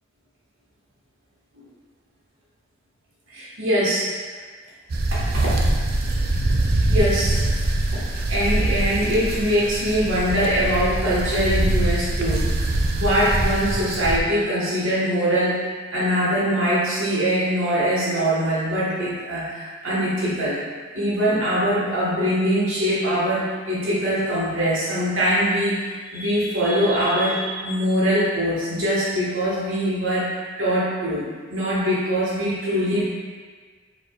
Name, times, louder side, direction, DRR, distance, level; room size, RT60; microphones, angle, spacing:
voice 1, 3.3-4.1 5.1-5.6 6.9-7.4 7.9-12.5 12.9-15.6 15.9-20.6 20.9-33.1, equal, 85° right, -8 dB, 1.3 m, -22 dB
sound 1, 4.9-14.2, right 2 dB, 50° right, 0.4 m, -23 dB
4.8 x 4.4 x 2.3 m, 1.5 s
head